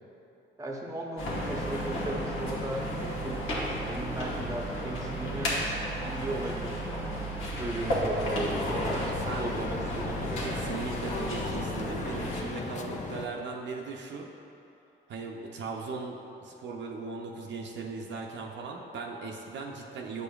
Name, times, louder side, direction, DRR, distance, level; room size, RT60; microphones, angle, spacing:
voice 1, 0.6-5.6 6.0-7.2 7.6-10.6, right 1 dB, 15° right, -1 dB, 0.7 m, -36 dB
sound 1, 1.2-12.4, equal, 80° left, 1.2 m, -33 dB
sound 2, 8.2-13.3, left 4 dB, 40° left, 0.5 m, -36 dB
voice 2, 8.9-9.5 10.4-14.3 15.1-20.2, right 4 dB, 65° right, 0 dB, 0.6 m, -38 dB
8.2 x 5.0 x 2.3 m, 2.8 s
cardioid pair, 90°, 20 cm